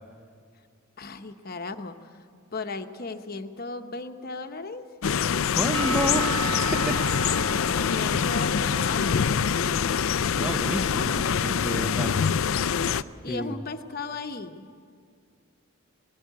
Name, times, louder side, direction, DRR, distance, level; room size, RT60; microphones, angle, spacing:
voice 1, 1.0-2.2 2.5-4.9 7.8-9.4 13.2-14.7, left 3 dB, 45° left, 7 dB, 1.0 m, -36 dB
sound 1, 5.0-13.0, left 7 dB, 70° left, 0.4 m, -25 dB
voice 2, 5.6-7.6 10.4-12.3 13.3-13.5, equal, 5° right, 7 dB, 0.7 m, -31 dB
Percussion / Church bell, 5.7-10.1, right 4 dB, 75° right, 1.7 m, -36 dB
20.0 x 16.0 x 9.4 m, 2.1 s
head